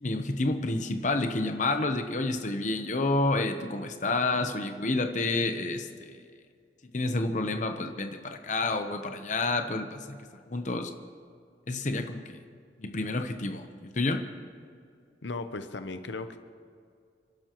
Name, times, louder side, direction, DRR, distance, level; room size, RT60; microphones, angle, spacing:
voice 1, 0.0-6.2 6.9-10.2 10.5-10.9 11.7-12.4 12.8-14.2, left 2 dB, 45° left, 6 dB, 0.8 m, -29 dB
voice 2, 15.2-16.4, left 3 dB, 85° left, 9 dB, 0.8 m, -36 dB
29.5 x 12.0 x 3.0 m, 2.3 s
head